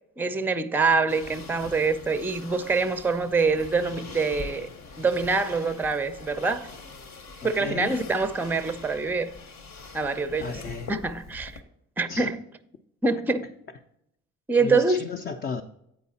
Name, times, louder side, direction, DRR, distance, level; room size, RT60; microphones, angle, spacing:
voice 1, 0.2-4.7 5.0-6.7 7.4-9.3 9.9-10.6 10.9-11.6 12.0-12.3 13.0-13.5 14.5-15.0, right 4 dB, 5° right, 0.5 m, -25 dB
sound 1, 1.1-11.6, left 3 dB, 60° left, 1.0 m, -43 dB
voice 2, 7.4-8.0 10.4-10.9 12.1-12.3 14.6-15.6, left 5 dB, 35° left, 0.6 m, -34 dB
8.4 x 4.7 x 4.2 m
cardioid pair, 90°, 30 cm